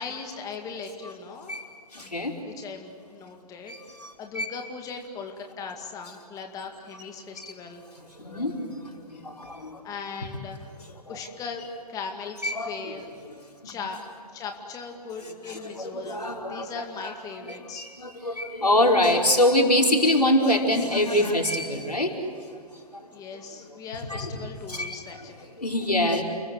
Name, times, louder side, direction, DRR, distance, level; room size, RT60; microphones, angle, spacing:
voice 1, 0.0-1.6 2.4-3.7 4.2-7.8 9.8-10.7 11.1-13.1 13.6-14.0 14.3-17.9 23.1-25.6, left 5 dB, 20° left, 3 dB, 2.2 m, -38 dB
voice 2, 1.9-2.3 3.7-4.5 8.2-9.8 11.1-11.2 12.4-12.7 13.6-13.7 15.5-17.1 17.4-22.2 22.9-23.0 24.1-24.3 24.7-25.3 25.6-26.2, left 1 dB, 85° left, 1 dB, 5.1 m, -25 dB
30.0 x 22.0 x 8.0 m, 2.2 s
figure-of-eight pair, 125°, 20 cm